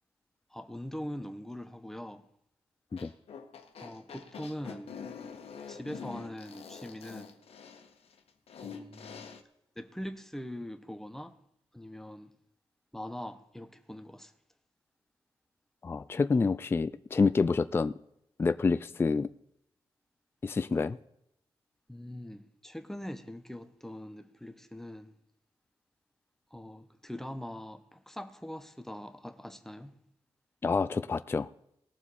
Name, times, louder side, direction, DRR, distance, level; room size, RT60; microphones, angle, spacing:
voice 1, 0.5-2.2 3.8-5.0 5.7-7.4 8.6-9.3 9.8-11.3 11.7-12.3 12.9-14.3 21.9-25.1 26.5-30.0, left 1 dB, 5° left, 0.9 m, -42 dB
sound 1, 2.9-9.4, left 6 dB, 80° left, 1.4 m, -46 dB
voice 2, 15.8-17.9 18.4-19.3 20.4-21.0 30.6-31.5, left 4 dB, 25° left, 0.3 m, -27 dB
19.5 x 7.1 x 4.2 m
wide cardioid pair, 145°, 10 cm